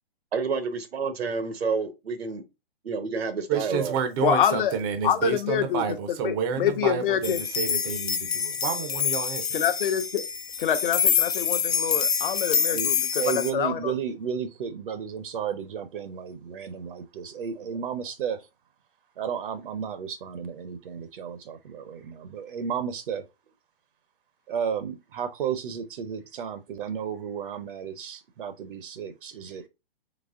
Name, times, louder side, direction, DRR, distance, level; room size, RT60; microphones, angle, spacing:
voice 1, 0.3-2.4 2.8-4.0 17.6-17.7, right 4 dB, 90° right, 1.1 m, -29 dB
voice 2, 3.5-9.5, right 7 dB, 25° right, 0.4 m, -29 dB
voice 3, 4.2-4.8 5.0-7.4 9.5-10.2 10.6-13.9, left 9 dB, 60° left, 0.8 m, -26 dB
sound 1, 7.2-13.5, left 7 dB, 90° left, 0.8 m, -26 dB
voice 4, 12.6-18.5 19.2-23.2 24.5-29.7, right 7 dB, 60° right, 0.7 m, -33 dB
4.1 x 3.0 x 3.5 m
hypercardioid pair, 145°, 30 cm